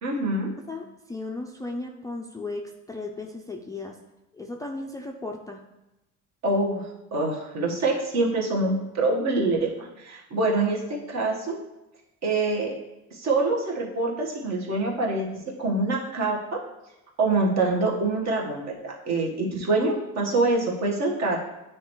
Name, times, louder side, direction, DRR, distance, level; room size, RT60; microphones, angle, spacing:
voice 1, 0.0-0.5 6.4-11.6 12.2-12.7 13.1-16.6 17.2-21.4, right 2 dB, 55° right, -1 dB, 1.4 m, -25 dB
voice 2, 0.6-4.0 4.3-5.6, left 2 dB, 10° left, 1 dB, 0.4 m, -36 dB
9.3 x 3.3 x 3.0 m, 0.96 s
cardioid pair, 120°, 33 cm